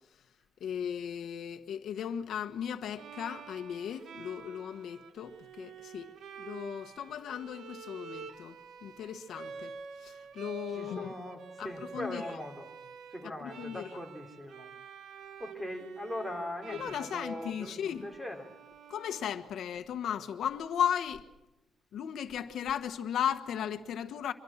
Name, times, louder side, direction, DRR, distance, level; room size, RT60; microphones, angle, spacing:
voice 1, 0.6-6.1 6.4-11.1 11.6-12.2 13.2-13.9 16.7-18.1 18.9-21.3 21.9-24.3, left 9 dB, 80° left, 1.4 m, -36 dB
Bowed string instrument, 2.9-19.9, right 6 dB, 75° right, 1.4 m, -48 dB
voice 2, 10.7-11.4 11.6-12.7 13.1-14.7 15.4-18.4, left 1 dB, 5° right, 3.0 m, -40 dB
25.5 x 23.5 x 7.4 m
wide cardioid pair, 175°, 0 cm